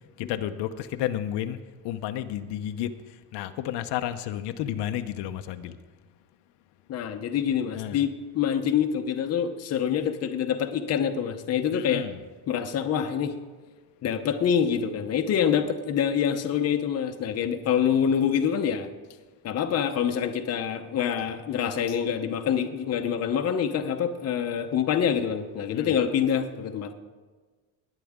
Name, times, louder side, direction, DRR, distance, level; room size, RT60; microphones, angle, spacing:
voice 1, 0.2-1.6 1.8-2.9 3.3-5.7 7.7-8.0 11.7-12.2 25.7-25.9, left 11 dB, 80° left, 8 dB, 0.8 m, -31 dB
voice 2, 6.9-12.0 12.5-13.3 14.0-18.9 19.4-26.9, left 8 dB, 40° left, 6 dB, 0.8 m, -26 dB
19.5 x 9.9 x 3.6 m, 1.4 s
cardioid pair, 170°, 41 cm